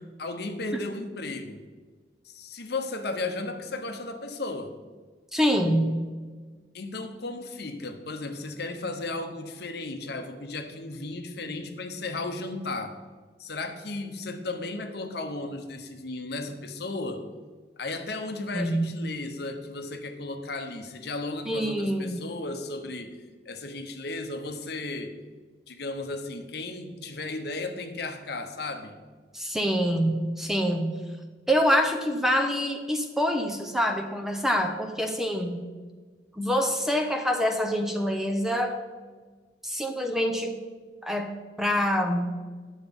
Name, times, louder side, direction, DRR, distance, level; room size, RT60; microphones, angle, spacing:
voice 1, 0.2-1.6 2.2-4.7 6.7-13.0 13.4-17.2 17.8-23.2 23.4-25.2 25.7-28.9, left 2 dB, 60° left, 7 dB, 0.9 m, -35 dB
voice 2, 5.3-6.1 18.5-18.9 21.5-22.2 29.3-31.0 31.5-35.7 36.3-38.8 39.6-40.5 41.0-41.3 41.6-42.4, equal, ahead, 4 dB, 0.7 m, -26 dB
10.0 x 7.2 x 5.3 m, 1.4 s
head